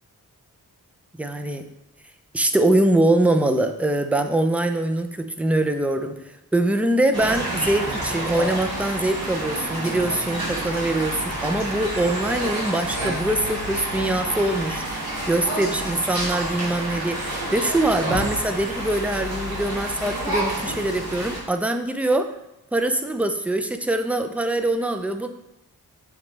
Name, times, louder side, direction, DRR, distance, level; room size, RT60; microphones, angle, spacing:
voice 1, 1.2-1.6 2.3-22.3 22.7-25.3, right 1 dB, 5° right, 7 dB, 0.4 m, -23 dB
sound 1, 7.1-21.4, right 1 dB, 80° right, 2.3 m, -29 dB
7.1 x 4.0 x 3.3 m, 0.87 s
wide cardioid pair, 110°, 36 cm